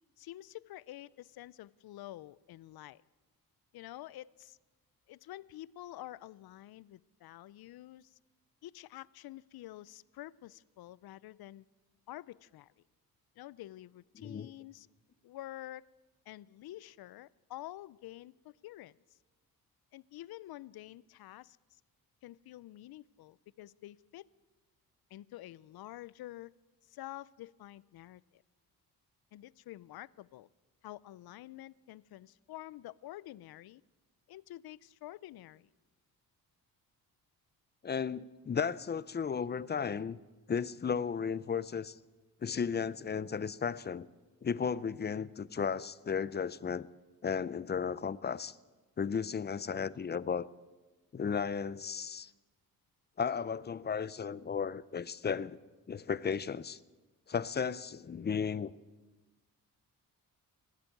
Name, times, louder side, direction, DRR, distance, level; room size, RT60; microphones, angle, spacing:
voice 1, 0.2-3.0 3.7-4.6 5.1-8.2 8.6-11.6 12.1-12.7 13.4-14.9 15.2-15.9 16.3-19.2 19.9-21.8 22.2-24.3 25.1-26.5 26.8-28.4 29.3-30.5 30.8-33.8 34.3-35.7, left 15 dB, 80° left, 0.5 m, -48 dB
voice 2, 14.2-14.5 37.8-40.2 40.5-42.0 42.4-44.1 44.4-46.9 47.2-48.6 49.0-50.5 51.1-52.3 53.2-55.6 55.9-56.8 57.3-58.7, left 6 dB, 30° left, 0.5 m, -34 dB
19.0 x 8.3 x 9.2 m
cardioid pair, 95°, 37 cm